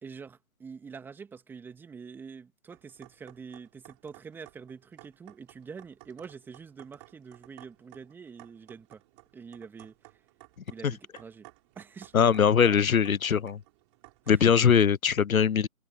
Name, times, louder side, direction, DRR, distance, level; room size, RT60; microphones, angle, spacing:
voice 1, 0.0-9.0 9.3-10.2 10.7-11.5 11.7-12.8 14.2-14.4, right 5 dB, 5° right, 2.6 m, -46 dB
sound 1, 2.7-14.6, right 26 dB, 20° right, 7.9 m, -56 dB
voice 2, 12.1-13.6 14.3-15.7, left 7 dB, 75° left, 0.7 m, -21 dB
figure-of-eight pair, 150°, 42 cm